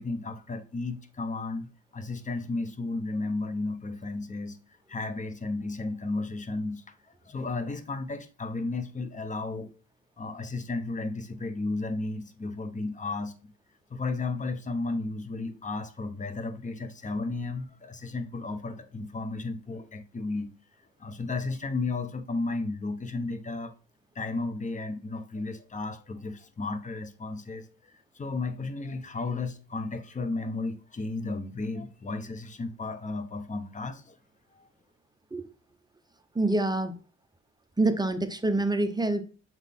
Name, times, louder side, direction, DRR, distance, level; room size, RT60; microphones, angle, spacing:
voice 1, 0.0-4.6 4.9-6.9 7.2-9.7 10.2-13.5 13.9-20.5 21.0-23.7 24.1-34.2 34.5-34.7, left 3 dB, 25° left, 0.9 m, -33 dB
voice 2, 36.3-37.0 37.8-39.2, right 2 dB, 15° right, 0.7 m, -26 dB
7.1 x 4.0 x 3.5 m
cardioid pair, 90°, 30 cm